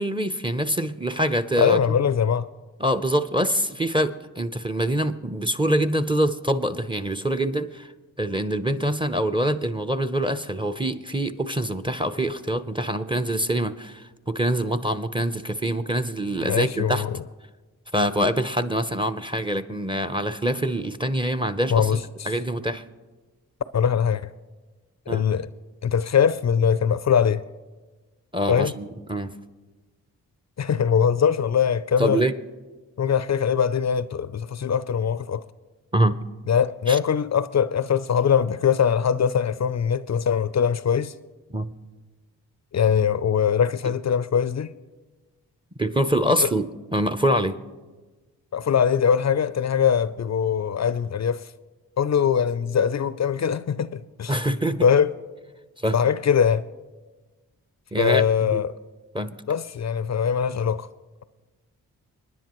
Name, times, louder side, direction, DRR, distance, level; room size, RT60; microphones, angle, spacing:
voice 1, 0.0-1.8 2.8-7.9 8.2-17.0 17.9-22.0 22.3-22.8 25.1-25.2 28.3-29.3 32.0-32.4 35.9-36.2 36.9-37.0 41.5-41.7 43.9-44.0 45.8-46.7 46.9-47.6 54.3-54.9 55.8-56.0 57.9-58.6 59.1-59.4, right 1 dB, 10° right, 0.7 m, -25 dB
voice 2, 1.6-2.5 16.4-17.2 21.7-22.3 23.7-24.3 25.1-25.5 25.8-27.4 28.5-28.7 30.6-32.2 33.0-35.4 36.5-41.1 42.7-44.7 46.4-46.5 48.5-51.5 52.0-54.4 54.8-55.1 55.9-56.7 58.0-58.7 59.5-60.9, left 7 dB, 40° left, 0.5 m, -22 dB
25.5 x 10.0 x 3.0 m
supercardioid pair, 40°, 41 cm